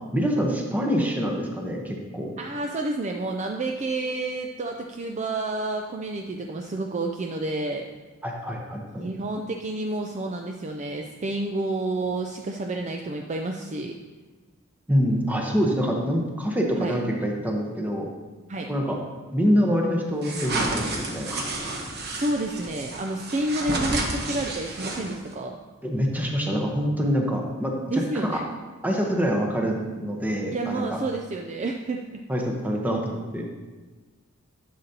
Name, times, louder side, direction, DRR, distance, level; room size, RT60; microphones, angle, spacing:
voice 1, 0.1-2.3 8.2-9.1 14.9-18.1 18.7-19.0 19.3-21.4 25.8-28.4 28.8-31.0 32.3-33.4, equal, 10° right, 0 dB, 1.0 m, -25 dB
voice 2, 2.4-7.9 9.0-14.0 16.8-16.9 18.5-18.7 22.1-25.6 27.9-28.4 30.5-32.2, right 2 dB, 30° right, 2 dB, 0.4 m, -29 dB
sound 1, 20.2-25.3, right 2 dB, 50° right, 1.1 m, -31 dB
11.0 x 6.7 x 2.8 m, 1.3 s
head